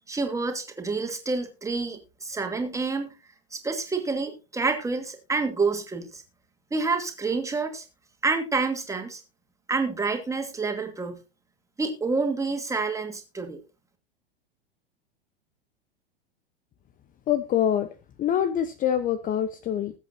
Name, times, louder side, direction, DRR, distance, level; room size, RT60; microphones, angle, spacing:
voice 1, 0.1-3.1 3.5-6.2 6.7-7.8 8.2-9.2 9.7-11.2 11.8-13.6, right 4 dB, 10° right, 5 dB, 2.6 m, -28 dB
voice 2, 17.3-17.9 18.2-19.9, left 10 dB, 25° left, 13 dB, 0.9 m, -25 dB
20.5 x 8.2 x 2.7 m, 0.29 s
figure-of-eight pair, 95°, 30 cm